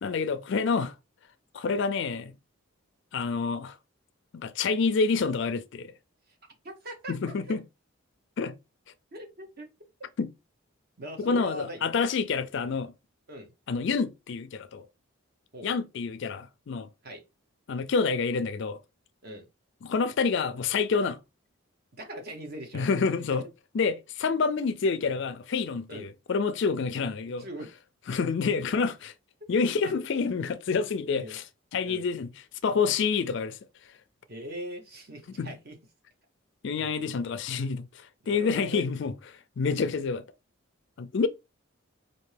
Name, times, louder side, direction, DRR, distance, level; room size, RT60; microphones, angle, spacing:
voice 1, 0.0-0.9 1.5-2.3 3.1-3.8 4.3-5.9 7.1-7.6 8.4-8.5 10.2-10.3 11.2-12.9 13.7-14.9 15.6-16.9 17.7-18.8 19.8-21.2 22.7-23.5 23.7-27.5 28.1-29.1 29.5-31.4 31.7-32.3 32.6-33.6 35.4-35.5 36.6-39.1 39.6-40.2 41.0-41.3, left 5 dB, 60° left, 0.4 m, -28 dB
voice 2, 6.6-7.1 9.1-9.7 11.0-11.8 13.3-13.5 15.5-15.7 17.0-17.2 19.2-19.5 21.9-22.9 25.9-26.1 27.3-27.7 29.8-29.9 31.1-31.4 31.8-32.1 34.3-35.8 38.2-38.9 39.8-40.0, right 1 dB, 45° right, 0.9 m, -40 dB
4.2 x 2.6 x 3.3 m
head